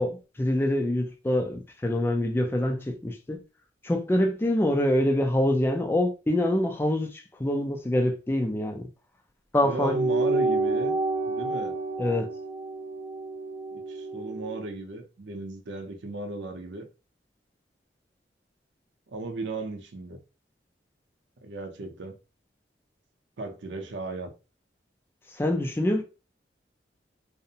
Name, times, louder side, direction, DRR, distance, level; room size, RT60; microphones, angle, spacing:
voice 1, 0.0-3.4 3.8-8.9 9.5-10.0 12.0-12.3 25.3-26.0, left 1 dB, 15° left, 0.3 m, -25 dB
voice 2, 9.6-10.9 11.3-11.8 13.7-16.9 19.1-20.2 21.4-22.2 23.4-24.3, right 2 dB, 80° right, 0.6 m, -35 dB
sound 1, 9.9-14.7, right 3 dB, 30° right, 0.6 m, -29 dB
2.5 x 2.0 x 2.7 m
head